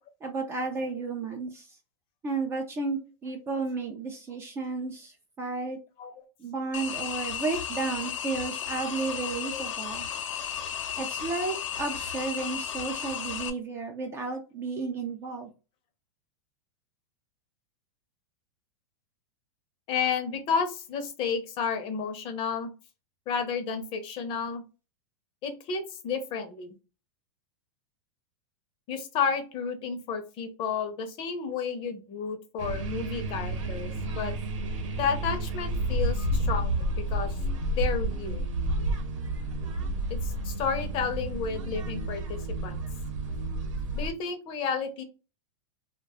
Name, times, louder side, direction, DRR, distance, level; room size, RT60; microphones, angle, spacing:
voice 1, 0.2-1.7 2.2-5.8 6.4-10.1 11.0-15.5, right 4 dB, 15° right, 4 dB, 0.4 m, -33 dB
sound 1, 6.7-13.5, left 8 dB, 85° left, 0.6 m, -34 dB
voice 2, 19.9-22.7 23.3-24.6 25.4-26.8 28.9-34.3 35.0-36.7 37.1-37.4 37.7-38.5 40.1-42.8 43.9-45.0, left 6 dB, 35° left, 7 dB, 0.6 m, -31 dB
sound 2, 32.6-44.1, right 1 dB, 90° right, 0.9 m, -30 dB
2.3 x 2.3 x 3.4 m, 0.31 s
supercardioid pair, 150°, 16 cm